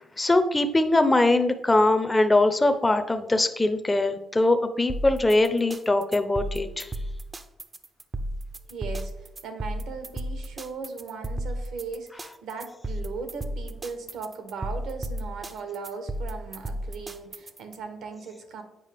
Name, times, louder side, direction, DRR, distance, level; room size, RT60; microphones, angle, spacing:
voice 1, 0.2-6.9, left 2 dB, 15° left, 8 dB, 0.6 m, -22 dB
sound 1, 4.9-17.8, right 1 dB, 25° right, 0.5 m, -34 dB
voice 2, 8.7-18.6, right 4 dB, 80° right, 7 dB, 1.1 m, -38 dB
8.2 x 5.0 x 3.4 m, 0.93 s
cardioid pair, 90°, 0 cm